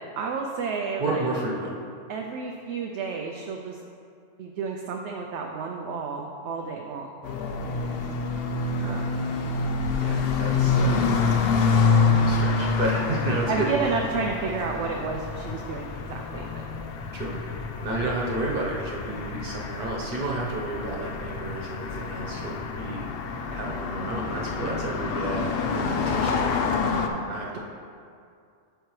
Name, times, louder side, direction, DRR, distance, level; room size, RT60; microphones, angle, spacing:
voice 1, 0.2-1.2 2.1-3.8 4.4-7.1 8.8-9.0 13.5-16.7 27.5-27.6, right 5 dB, 70° right, 2 dB, 0.8 m, -31 dB
voice 2, 1.0-1.7 8.8-9.1 10.0-11.1 12.2-13.9 17.1-17.4 17.8-26.6 27.1-27.6, right 2 dB, 50° right, -3 dB, 1.2 m, -31 dB
sound 1, 7.2-27.1, left 4 dB, 60° left, 0.7 m, -27 dB
11.5 x 4.4 x 3.2 m, 2.4 s
omnidirectional pair, 1.3 m